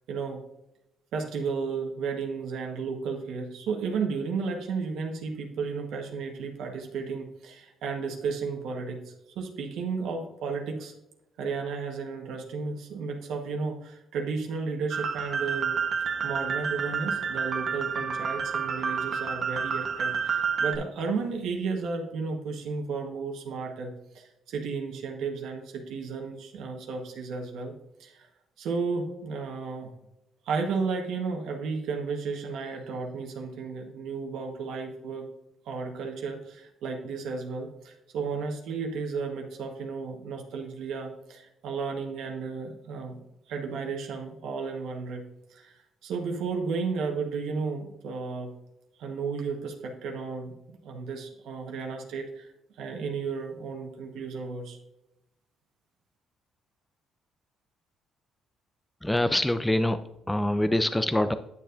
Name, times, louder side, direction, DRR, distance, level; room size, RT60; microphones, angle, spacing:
voice 1, 0.1-0.4 1.1-10.9 11.4-15.7 16.2-27.7 28.0-28.3 28.6-29.9 30.4-35.3 35.6-43.2 43.5-45.2 45.5-48.5 49.0-50.5 50.8-52.5 52.8-54.8, right 5 dB, 80° right, 1 dB, 1.2 m, -33 dB
sound 1, 14.9-20.8, right 6 dB, 45° right, 1.0 m, -29 dB
voice 2, 59.0-61.3, left 1 dB, 10° left, 10 dB, 0.3 m, -25 dB
9.9 x 6.9 x 2.5 m, 0.89 s
cardioid pair, 130°, 0 cm